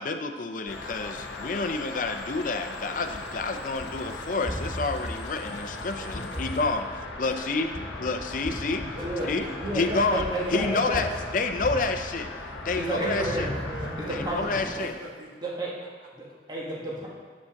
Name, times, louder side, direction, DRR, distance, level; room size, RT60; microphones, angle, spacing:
voice 1, 0.0-7.7 8.0-8.8 9.2-9.5 9.7-10.2 10.5-12.3 12.6-13.5 14.1-14.9, left 3 dB, 45° left, 7 dB, 0.6 m, -29 dB
sound 1, 0.7-14.9, left 2 dB, 80° left, 1.1 m, -38 dB
Gunshot gunfire, 3.1-12.8 13.2-14.7, equal, 10° left, 2.4 m, -39 dB
voice 2, 6.0-6.9 7.3-7.9 8.9-10.8 13.2-16.1, right 1 dB, 50° right, -2 dB, 1.6 m, -44 dB
voice 3, 9.0-11.0 12.8-13.6 14.0-14.4 15.4-15.7 16.2-17.1, right 1 dB, 25° right, -4 dB, 1.4 m, -31 dB
8.3 x 5.3 x 5.8 m, 1.5 s
head